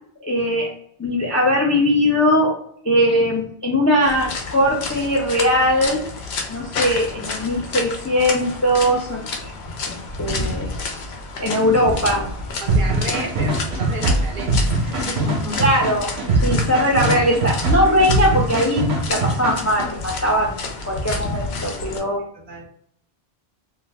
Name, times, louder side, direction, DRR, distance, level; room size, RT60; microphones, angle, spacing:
voice 1, 0.2-0.7 1.0-2.5 2.8-6.0 6.5-9.5 9.8-10.7 11.4-12.3 15.6-16.1 16.4-22.2, equal, 25° left, -2 dB, 0.3 m, -20 dB
sound 1, 4.0-22.0, left 3 dB, 85° left, 0.9 m, -30 dB
voice 2, 12.6-15.6 16.3-16.6 22.0-22.1 22.3-22.7, right 1 dB, 60° right, 0 dB, 0.8 m, -33 dB
sound 2, 12.7-19.9, right 2 dB, 85° right, 1.0 m, -22 dB
2.5 x 2.2 x 3.2 m, 0.66 s
omnidirectional pair, 1.1 m